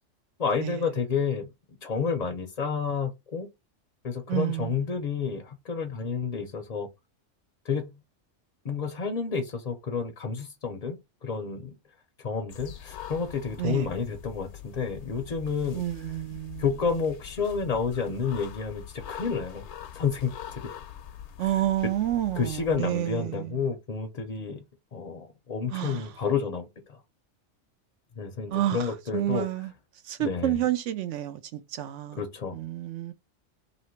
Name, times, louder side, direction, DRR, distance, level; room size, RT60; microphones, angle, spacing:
voice 1, 0.4-1.5 1.8-3.5 4.0-6.9 7.7-7.9 8.6-11.7 12.2-15.8 16.6-19.7 19.9-20.7 21.4-21.6 22.4-24.6 24.9-27.0 28.2-29.5 30.2-30.6 32.2-32.6, left 5 dB, 45° left, 0.6 m, -30 dB
voice 2, 4.3-4.7 13.6-13.9 15.7-16.6 21.4-23.6 25.7-26.1 28.5-29.7 30.0-32.2 32.5-33.1, right 13 dB, 75° right, 0.9 m, -29 dB
sound 1, 12.5-22.8, left 9 dB, 70° left, 0.8 m, -43 dB
3.0 x 2.8 x 4.3 m
omnidirectional pair, 1.3 m